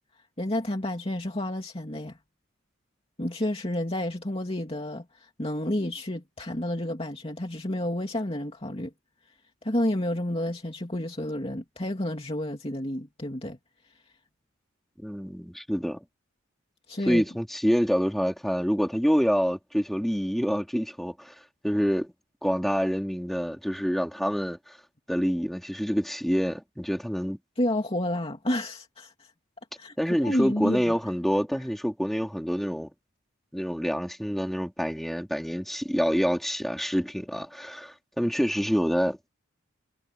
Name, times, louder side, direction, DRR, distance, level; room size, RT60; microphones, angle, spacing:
voice 1, 0.4-2.2 3.2-8.9 9.6-13.6 16.9-17.2 27.6-29.3 29.8-29.9 30.2-30.9, left 1 dB, 30° left, 2.7 m, -30 dB
voice 2, 15.0-16.0 17.1-21.3 21.6-22.1 22.4-24.7 25.1-27.4 30.0-32.9 33.5-39.2, equal, ahead, 3.7 m, -27 dB
head